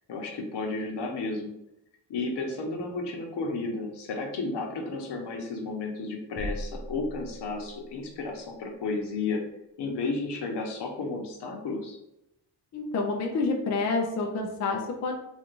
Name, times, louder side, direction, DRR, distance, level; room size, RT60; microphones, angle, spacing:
voice 1, 0.1-1.5 2.1-9.4 9.8-12.0, left 3 dB, 75° left, 2 dB, 1.0 m, -33 dB
sound 1, 6.4-8.0, equal, 25° right, 0.6 m, -38 dB
voice 2, 12.7-15.1, left 3 dB, 40° left, 1 dB, 0.5 m, -28 dB
3.6 x 2.5 x 4.5 m, 0.86 s
wide cardioid pair, 175°, 42 cm